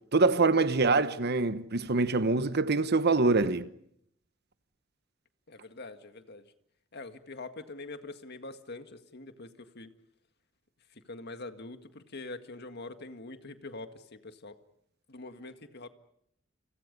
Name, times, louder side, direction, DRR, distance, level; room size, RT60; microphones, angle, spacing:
voice 1, 0.1-3.7, right 3 dB, 55° right, 1.1 m, -25 dB
voice 2, 5.5-6.5 6.9-9.9 10.9-14.6 15.1-15.9, left 2 dB, 55° left, 1.9 m, -44 dB
30.0 x 28.0 x 5.4 m
head